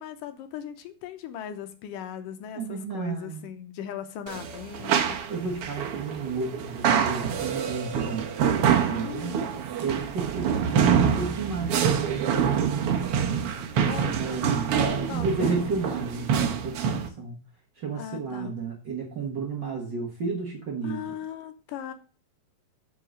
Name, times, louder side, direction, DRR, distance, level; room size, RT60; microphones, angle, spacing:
voice 1, 0.0-5.3 8.9-9.5 13.9-14.2 15.1-15.6 18.0-18.5 20.8-21.9, left 9 dB, 75° left, 9 dB, 2.3 m, -38 dB
voice 2, 2.5-3.4 5.3-9.4 9.8-13.0 14.1-17.4 17.8-21.1, right 4 dB, 60° right, -1 dB, 1.1 m, -32 dB
sound 1, 4.3-17.1, right 7 dB, 80° right, 1.3 m, -26 dB
7.4 x 5.7 x 6.3 m, 0.37 s
omnidirectional pair, 4.1 m